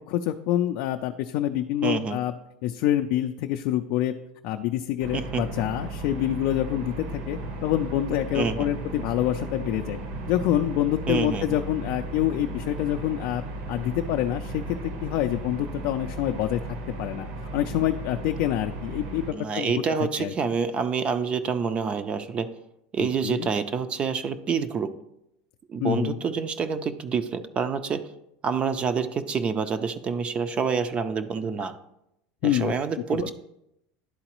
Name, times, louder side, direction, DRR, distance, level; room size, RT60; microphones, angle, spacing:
voice 1, 0.1-2.3 2.6-4.1 4.4-10.0 10.3-13.4 13.7-16.6 17.0-17.3 17.5-19.7 20.2-20.3 23.0-23.5 25.8-26.2 32.4-32.7 33.2-33.3, left 12 dB, 60° left, 5 dB, 0.3 m, -26 dB
voice 2, 1.8-2.2 5.1-5.5 8.3-8.7 11.1-11.6 19.3-22.5 22.9-24.9 25.7-28.1 28.4-31.7 32.4-33.3, right 6 dB, 25° right, 11 dB, 0.4 m, -27 dB
sound 1, 5.0-19.3, right 2 dB, 65° right, 0.9 m, -36 dB
11.0 x 3.9 x 3.0 m, 0.82 s
supercardioid pair, 140°, 4 cm